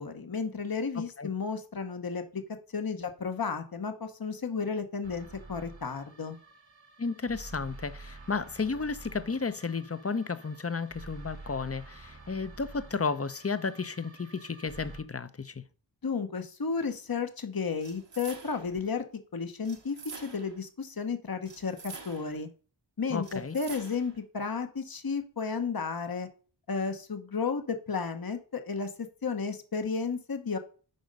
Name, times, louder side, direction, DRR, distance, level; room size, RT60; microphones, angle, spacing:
voice 1, 0.0-2.4 2.7-6.4 16.0-19.0 19.3-22.5 23.0-26.3 26.7-30.6, left 5 dB, 50° left, 1.1 m, -33 dB
sound 1, 5.0-15.0, right 3 dB, 85° right, 2.2 m, -49 dB
voice 2, 7.0-15.6 23.1-23.6, left 4 dB, 30° left, 0.7 m, -33 dB
sound 2, 17.8-18.8 19.6-20.6 21.5-22.4 23.2-24.2, right 4 dB, 70° right, 1.3 m, -46 dB
9.3 x 5.2 x 5.3 m
wide cardioid pair, 45°, 45 cm